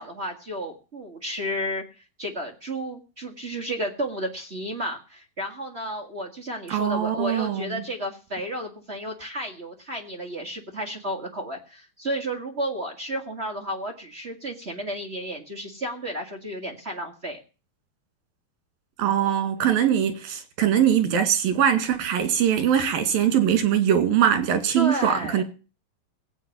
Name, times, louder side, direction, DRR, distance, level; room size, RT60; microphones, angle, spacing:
voice 1, 0.0-1.8 2.2-17.4 24.7-25.4, equal, 35° right, 0.9 m, -32 dB
voice 2, 6.7-7.8 19.0-25.4, right 9 dB, 90° right, 3.9 m, -22 dB
17.5 x 8.2 x 7.1 m
omnidirectional pair, 4.0 m